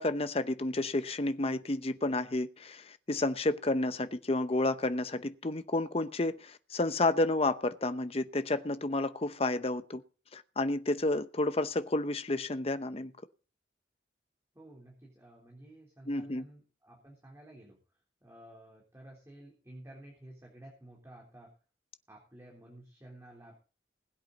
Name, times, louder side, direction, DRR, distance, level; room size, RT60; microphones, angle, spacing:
voice 1, 0.0-10.0 10.3-13.1 16.1-16.4, left 2 dB, 35° left, 0.8 m, -31 dB
voice 2, 14.5-17.8 18.2-21.5 22.1-23.5, right 1 dB, 15° right, 3.4 m, -53 dB
20.5 x 8.2 x 4.0 m
head